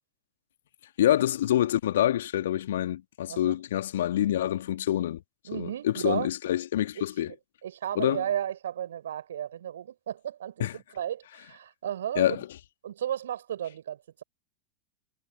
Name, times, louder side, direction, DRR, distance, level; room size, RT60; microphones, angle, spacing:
voice 1, 1.0-5.2 5.5-7.3 8.0-8.2 10.6-10.7 12.2-12.5, left 12 dB, 60° left, 2.3 m, -26 dB
voice 2, 5.5-6.3 6.9-7.3 7.6-12.4 12.8-14.2, right 10 dB, 65° right, 4.8 m, -34 dB
figure-of-eight pair, 90°, 0 cm